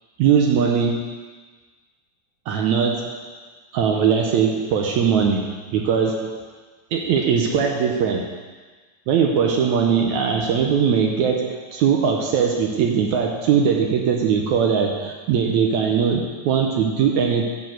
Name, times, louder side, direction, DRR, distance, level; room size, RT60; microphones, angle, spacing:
voice 1, 0.2-1.1 2.5-3.2 3.7-6.5 6.9-8.3 9.1-17.5, right 6 dB, 75° right, 2 dB, 1.9 m, -20 dB
12.0 x 4.6 x 7.9 m, 1.4 s
omnidirectional pair, 3.8 m